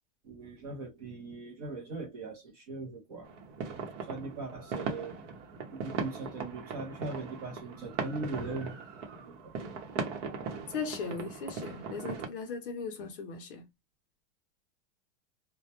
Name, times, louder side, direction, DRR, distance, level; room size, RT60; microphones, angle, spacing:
voice 1, 0.2-3.3 4.1-5.2 5.7-8.8 9.2-9.5, right 3 dB, 30° right, 0.5 m, -40 dB
sound 1, 3.3-12.3, right 5 dB, 60° right, 0.8 m, -39 dB
voice 2, 10.7-13.7, left 5 dB, 40° left, 0.5 m, -38 dB
2.1 x 2.1 x 2.7 m
supercardioid pair, 180°, 40 cm